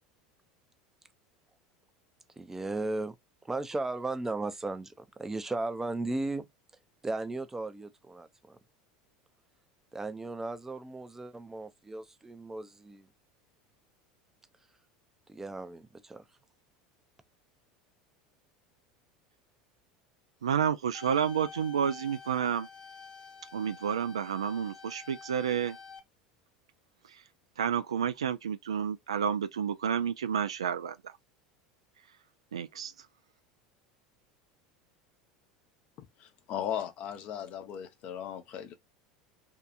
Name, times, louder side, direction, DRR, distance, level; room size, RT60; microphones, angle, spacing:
voice 1, 2.4-3.1 3.4-6.5 7.0-8.6 9.9-13.0 15.3-16.2, right 2 dB, 15° right, 0.5 m, -36 dB
voice 2, 20.4-22.7 23.5-25.8 27.6-31.0 32.5-32.9, right 8 dB, 80° right, 0.3 m, -30 dB
sound 1, 20.9-26.0, left 5 dB, 20° left, 0.9 m, -49 dB
voice 3, 36.2-38.7, left 9 dB, 50° left, 0.7 m, -37 dB
2.7 x 2.3 x 2.3 m
hypercardioid pair, 80°, 3 cm